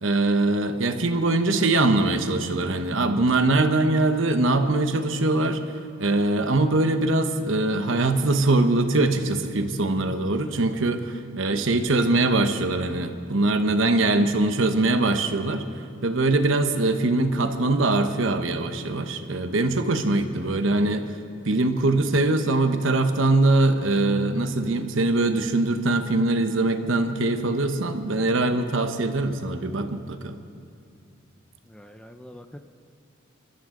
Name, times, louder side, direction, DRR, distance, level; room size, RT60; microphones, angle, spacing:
voice 1, 0.0-5.6 6.0-15.6 16.0-21.1 21.4-30.4, right 2 dB, 75° right, 7 dB, 1.0 m, -22 dB
voice 2, 31.7-32.6, equal, 5° left, 7 dB, 0.5 m, -43 dB
29.5 x 12.5 x 3.8 m, 2.4 s
head